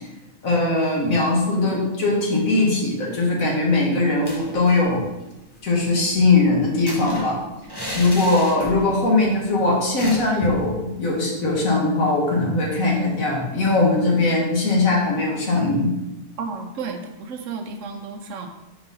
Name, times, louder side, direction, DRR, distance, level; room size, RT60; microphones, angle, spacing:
voice 1, 0.4-5.1 5.6-7.3 8.0-15.9, left 2 dB, 80° left, -2 dB, 1.8 m, -20 dB
sound 1, 4.1-4.9 5.2-5.3 5.6-9.0 9.3-9.4 10.0-10.7, equal, 20° left, 1.0 m, -34 dB
voice 2, 16.4-18.5, right 5 dB, 70° right, 5 dB, 1.0 m, -32 dB
4.5 x 3.9 x 5.4 m, 1.0 s
omnidirectional pair, 1.4 m